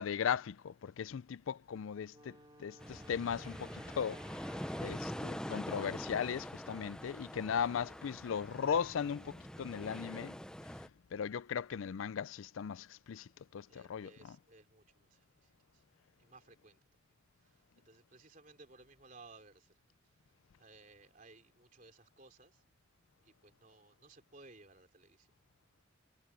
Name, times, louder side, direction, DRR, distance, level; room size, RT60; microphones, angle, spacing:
voice 1, 0.0-4.2 4.8-10.3 11.1-14.4, left 7 dB, 85° left, 0.4 m, -37 dB
Wind instrument woodwind instrument, 2.1-6.2, right 1 dB, 25° right, 3.2 m, -56 dB
sound 1, 2.8-10.9, equal, 5° left, 0.6 m, -44 dB
voice 2, 4.4-5.0 13.7-15.8 16.2-16.8 17.4-19.7 20.6-22.6 23.2-25.3, right 3 dB, 40° right, 3.3 m, -60 dB
head